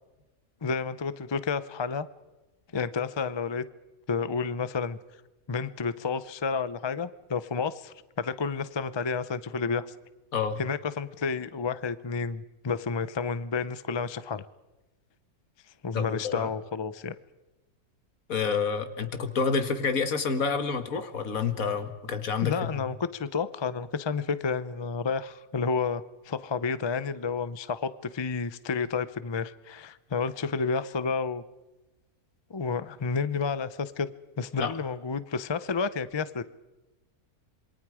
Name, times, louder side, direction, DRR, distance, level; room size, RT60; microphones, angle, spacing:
voice 1, 0.6-2.1 2.7-3.6 4.1-5.0 5.5-9.9 10.6-14.5 15.8-17.1 22.4-31.4 32.5-34.1 34.4-36.4, left 5 dB, 45° left, 15 dB, 0.3 m, -30 dB
voice 2, 15.9-16.5 18.3-22.9 34.6-34.7, left 5 dB, 60° left, 9 dB, 1.9 m, -28 dB
27.0 x 23.0 x 4.9 m, 1.1 s
omnidirectional pair, 1.7 m